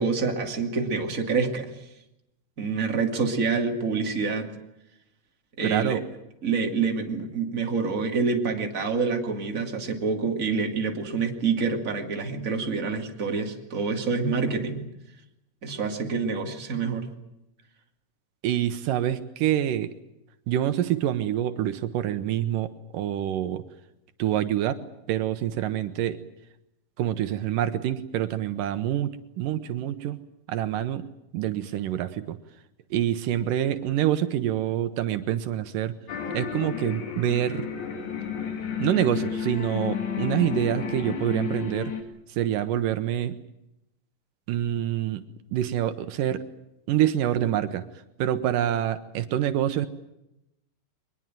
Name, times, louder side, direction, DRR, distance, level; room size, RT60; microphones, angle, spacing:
voice 1, 0.0-1.8 2.6-4.5 5.6-6.0 6.4-14.9 15.6-17.1, right 4 dB, 25° right, 3 dB, 2.7 m, -27 dB
voice 2, 5.6-6.0 18.4-19.9 20.5-23.6 24.2-24.8 25.1-26.2 27.0-30.2 30.5-31.1 31.3-32.4 32.9-36.0 36.3-37.7 38.8-41.9 42.3-43.4 44.5-45.2 45.5-46.4 46.9-47.8 48.2-49.9, right 11 dB, 80° right, 10 dB, 2.6 m, -26 dB
sound 1, 36.1-42.0, left 7 dB, 60° left, 3.7 m, -31 dB
23.0 x 21.0 x 9.1 m, 0.87 s
omnidirectional pair, 3.8 m